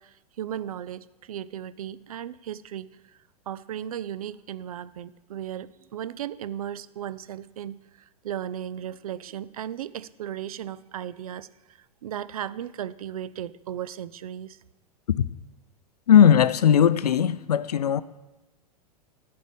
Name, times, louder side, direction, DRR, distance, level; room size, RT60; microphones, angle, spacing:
voice 1, 0.0-2.9 3.5-7.8 8.2-11.5 12.0-14.6, right 10 dB, 65° right, 0.4 m, -36 dB
voice 2, 16.1-18.0, left 9 dB, 75° left, 0.5 m, -18 dB
10.0 x 4.7 x 7.1 m
figure-of-eight pair, 95°, 20 cm